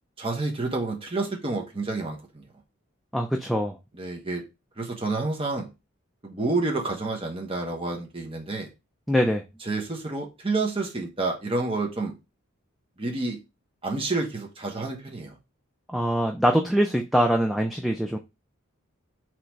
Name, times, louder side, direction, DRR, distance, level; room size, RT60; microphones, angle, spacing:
voice 1, 0.2-2.4 3.9-4.4 4.8-5.7 6.2-8.7 9.6-12.1 13.0-13.4 13.8-15.4, right 3 dB, 25° right, 1 dB, 1.0 m, -29 dB
voice 2, 3.1-3.7 9.1-9.4 15.9-18.2, equal, ahead, 3 dB, 0.3 m, -23 dB
3.9 x 3.0 x 4.5 m, 0.25 s
head